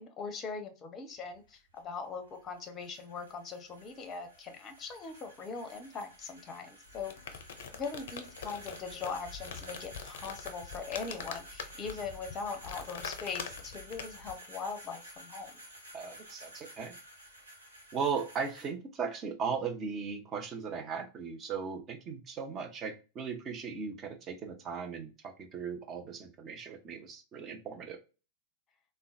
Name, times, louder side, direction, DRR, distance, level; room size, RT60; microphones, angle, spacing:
voice 1, 0.0-7.4 7.8-15.5, left 5 dB, 25° left, 6 dB, 0.7 m, -41 dB
sound 1, 1.2-18.7, equal, 75° right, 0.9 m, -52 dB
sound 2, 6.9-14.3, left 6 dB, 55° left, 0.5 m, -44 dB
voice 2, 15.9-16.9 17.9-28.0, right 6 dB, 30° right, 5 dB, 0.7 m, -37 dB
3.7 x 2.2 x 2.6 m, 0.33 s
figure-of-eight pair, 90°, 0 cm